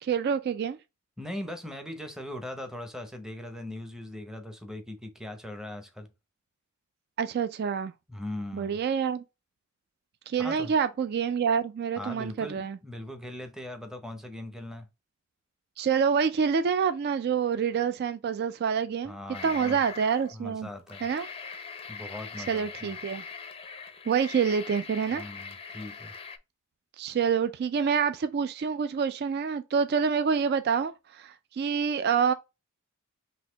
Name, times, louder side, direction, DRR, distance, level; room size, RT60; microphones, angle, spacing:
voice 1, 0.0-0.8 7.2-7.9 8.5-9.2 10.3-12.8 15.8-19.2 19.4-20.7 21.0-21.3 22.5-23.2 24.1-25.2 27.0-32.3, right 6 dB, 50° right, 0.3 m, -27 dB
voice 2, 1.2-6.1 8.1-8.8 10.4-10.7 12.0-14.9 19.0-19.8 20.3-21.1 21.9-23.0 25.2-26.1, left 1 dB, 5° right, 0.8 m, -40 dB
sound 1, 19.3-20.3 20.8-26.4, left 5 dB, 25° left, 0.5 m, -42 dB
4.0 x 2.8 x 3.8 m
head